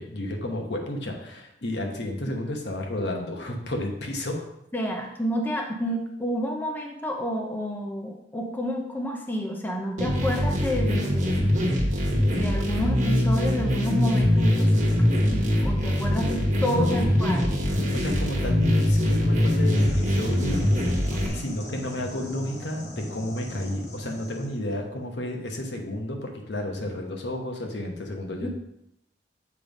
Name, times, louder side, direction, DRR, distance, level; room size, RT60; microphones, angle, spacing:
voice 1, 0.0-4.5 16.1-16.3 16.7-17.1 17.9-20.7 21.3-28.5, left 1 dB, 70° left, 2 dB, 1.1 m, -31 dB
voice 2, 4.7-11.5 12.3-17.5 21.1-21.5 28.4-28.5, equal, 10° left, 1 dB, 0.7 m, -30 dB
sound 1, 10.0-21.3, left 1 dB, 40° right, 1.3 m, -23 dB
sound 2, 19.7-24.6, equal, 40° left, 1.2 m, -38 dB
7.2 x 3.3 x 5.1 m, 0.81 s
head